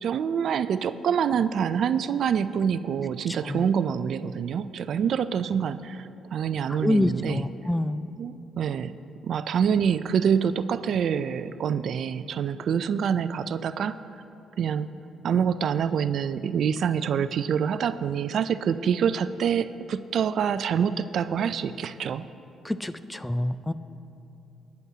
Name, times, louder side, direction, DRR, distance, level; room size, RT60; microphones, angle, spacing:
voice 1, 0.0-7.4 8.2-8.9 9.2-14.0 14.6-14.9 15.2-22.3, right 7 dB, 65° right, 13 dB, 0.4 m, -26 dB
voice 2, 3.3-3.7 6.7-8.1 22.6-23.7, left 1 dB, 10° left, 12 dB, 0.4 m, -27 dB
27.5 x 9.4 x 2.8 m, 2.8 s
cardioid pair, 90°, 0 cm